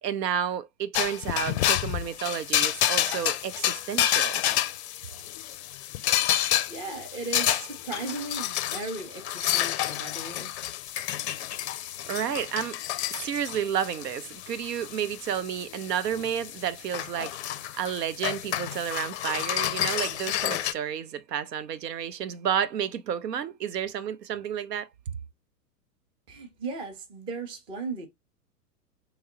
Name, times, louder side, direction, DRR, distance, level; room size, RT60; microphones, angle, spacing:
voice 1, 0.0-4.4 12.1-12.8 13.1-24.9, right 9 dB, 80° right, 0.6 m, -31 dB
sound 1, 0.9-20.7, left 12 dB, 45° left, 0.4 m, -29 dB
voice 2, 6.4-10.5 26.3-28.1, right 3 dB, 10° right, 0.4 m, -37 dB
3.0 x 2.0 x 3.7 m
figure-of-eight pair, 105°, 48 cm